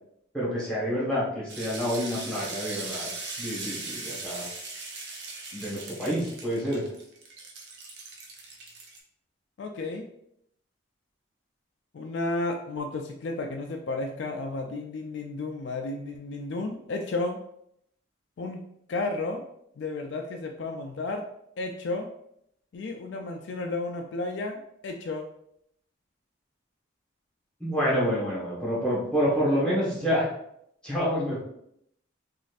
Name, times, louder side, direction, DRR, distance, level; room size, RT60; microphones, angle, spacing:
voice 1, 0.3-3.1 3.4-4.4 5.5-6.9 27.6-30.3 30.8-31.4, equal, 5° left, -8 dB, 1.2 m, -28 dB
sound 1, 1.5-9.0, right 3 dB, 60° right, 0.6 m, -39 dB
voice 2, 9.6-10.1 11.9-17.4 18.4-18.6 18.9-19.4 19.8-21.2 21.6-22.1 22.7-25.3, left 2 dB, 60° left, 3 dB, 0.3 m, -32 dB
4.0 x 2.5 x 2.5 m, 0.73 s
head